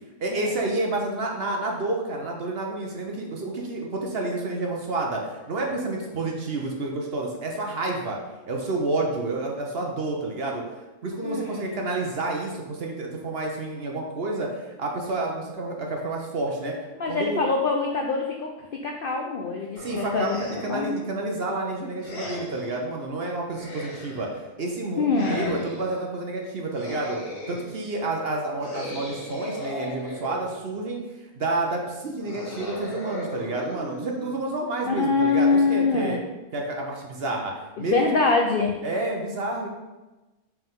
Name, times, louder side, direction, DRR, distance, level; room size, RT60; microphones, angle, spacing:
voice 1, 0.2-8.2 8.5-10.6 11.0-16.8 17.1-17.4 19.8-24.3 24.6-27.2 27.5-31.0 31.3-36.2 36.5-38.0 38.8-39.7, right 2 dB, 50° right, 0 dB, 0.9 m, -29 dB
voice 2, 11.2-11.7 17.0-18.5 18.8-20.9 25.0-25.6 34.9-36.2 37.8-38.8, left 4 dB, 85° left, 1 dB, 0.4 m, -24 dB
sound 1, 19.7-20.9 22.0-22.8 23.5-24.4 25.1-26.0 26.7-27.8 28.6-30.7 32.2-34.6, left 1 dB, 40° left, 1.3 m, -37 dB
5.6 x 4.6 x 3.7 m, 1.1 s
omnidirectional pair, 1.6 m